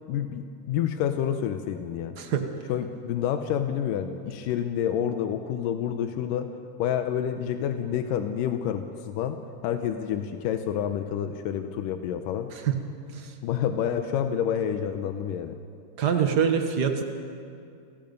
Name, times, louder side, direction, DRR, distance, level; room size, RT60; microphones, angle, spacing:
voice 1, 0.1-2.2 2.7-6.5 6.8-12.5 13.4-15.6, left 9 dB, 85° left, 7 dB, 2.4 m, -28 dB
voice 2, 2.2-2.5 12.5-13.3 16.0-17.0, right 7 dB, 80° right, 5 dB, 0.9 m, -26 dB
29.5 x 20.0 x 5.3 m, 2.4 s
omnidirectional pair, 3.8 m